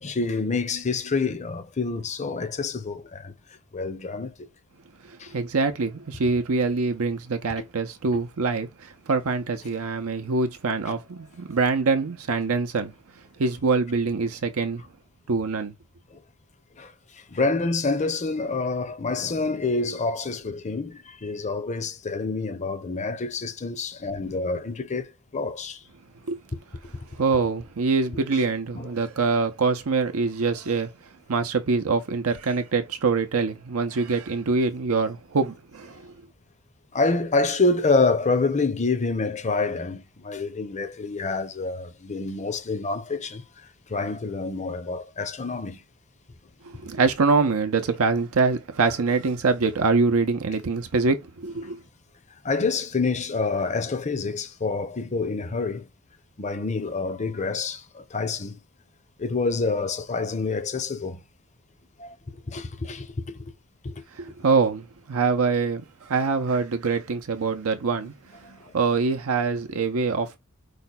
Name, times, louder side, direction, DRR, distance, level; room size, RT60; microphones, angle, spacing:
voice 1, 0.0-3.3 3.7-4.5 5.2-5.3 16.1-16.2 16.8-25.8 28.3-28.4 28.7-28.9 36.9-43.4 43.9-45.8 52.4-55.9 56.4-58.6 59.2-61.2 62.0-62.2 62.5-63.5 63.8-63.9 68.4-68.6, left 3 dB, 35° left, 0.7 m, -27 dB
voice 2, 5.0-12.9 13.4-14.8 15.3-15.7 26.3-26.4 27.1-30.9 31.3-36.1 46.6-51.8 64.1-68.1 68.5-70.4, right 4 dB, 70° right, 0.6 m, -24 dB
4.9 x 2.2 x 4.1 m
head